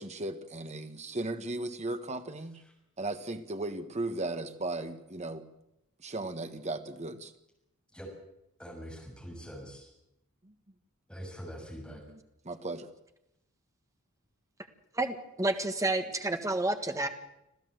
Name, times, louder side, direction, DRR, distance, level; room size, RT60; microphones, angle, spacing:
voice 1, 0.0-2.6 3.0-5.4 6.0-7.3 10.4-10.5 12.1-12.2 12.4-12.9, right 2 dB, 30° right, 8 dB, 1.5 m, -36 dB
voice 2, 8.6-9.9 11.1-12.0, equal, 5° left, 0 dB, 6.6 m, -44 dB
voice 3, 14.9-17.1, right 2 dB, 15° right, 6 dB, 1.6 m, -30 dB
26.5 x 15.0 x 7.9 m, 0.85 s
head